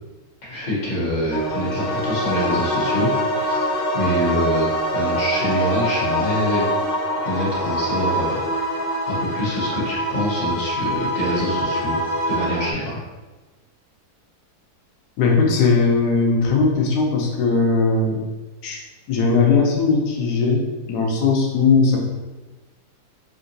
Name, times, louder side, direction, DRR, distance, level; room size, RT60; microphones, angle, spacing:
voice 1, 0.4-3.1 3.4-6.7 7.2-8.4 9.1-12.0 12.3-13.0, equal, 30° left, -7 dB, 1.1 m, -25 dB
sound 1, 1.3-12.7, equal, 65° left, 0.7 m, -24 dB
voice 2, 15.2-18.2 18.6-18.8 19.1-22.0, left 4 dB, 85° left, -1 dB, 1.2 m, -18 dB
3.8 x 2.5 x 2.6 m, 1.2 s
omnidirectional pair, 1.7 m